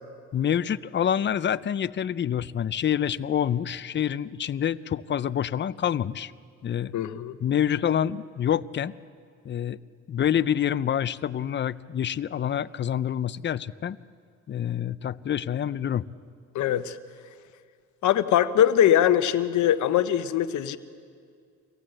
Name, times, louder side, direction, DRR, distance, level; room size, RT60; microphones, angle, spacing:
voice 1, 0.3-6.3 6.6-6.9 7.4-8.9 9.4-9.8 10.1-14.0 14.5-16.0, left 9 dB, 40° left, 16 dB, 0.5 m, -27 dB
voice 2, 6.9-7.4 16.5-17.0 18.0-20.8, left 10 dB, 75° left, 10 dB, 0.9 m, -22 dB
24.5 x 17.5 x 7.7 m, 2.2 s
cardioid pair, 90°, 30 cm